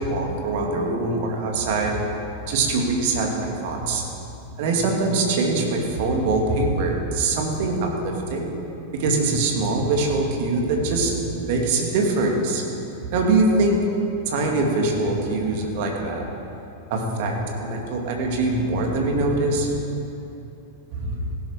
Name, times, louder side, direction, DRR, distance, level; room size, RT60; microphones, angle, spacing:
voice 1, 0.0-1.9 2.5-4.1 4.6-8.5 8.9-12.6 13.0-13.8 14.3-16.3 16.9-19.8 20.9-21.3, right 2 dB, 50° right, 1 dB, 2.5 m, -23 dB
16.0 x 12.0 x 4.8 m, 2.9 s
figure-of-eight pair, 90°, 0 cm